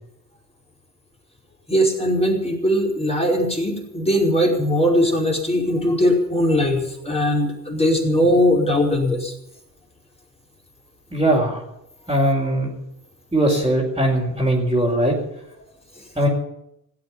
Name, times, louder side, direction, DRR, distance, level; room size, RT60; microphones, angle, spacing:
voice 1, 1.7-9.3, equal, 10° left, -1 dB, 5.1 m, -20 dB
voice 2, 11.1-11.6 12.1-12.7 13.3-15.1 16.1-16.3, right 1 dB, 10° right, -4 dB, 4.9 m, -20 dB
17.5 x 8.2 x 9.8 m, 0.81 s
hypercardioid pair, 65°, 49 cm